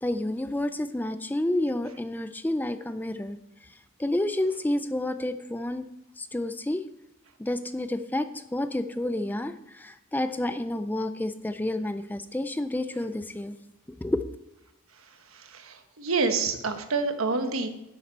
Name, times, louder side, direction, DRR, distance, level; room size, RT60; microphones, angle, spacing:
voice 1, 0.0-5.9 6.2-6.9 7.4-13.6 14.0-14.2, left 1 dB, 10° left, 10 dB, 0.4 m, -30 dB
voice 2, 15.3-17.7, right 4 dB, 80° right, 7 dB, 1.3 m, -28 dB
11.0 x 8.2 x 4.4 m, 0.88 s
head